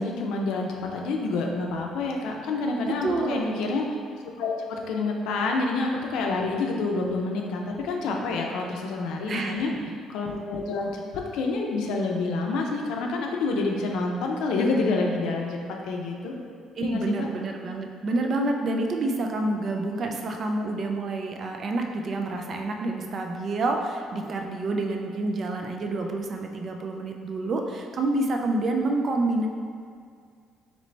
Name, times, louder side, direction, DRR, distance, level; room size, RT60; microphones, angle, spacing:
voice 1, 0.0-3.8 4.4-9.7 10.1-15.6 15.8-16.3 16.8-17.3, left 3 dB, 75° left, 1 dB, 0.5 m, -28 dB
voice 2, 2.8-3.5 9.3-9.8 16.8-29.5, right 2 dB, 35° right, 3 dB, 0.3 m, -28 dB
3.9 x 3.0 x 3.2 m, 2.1 s
cardioid pair, 165°, 0 cm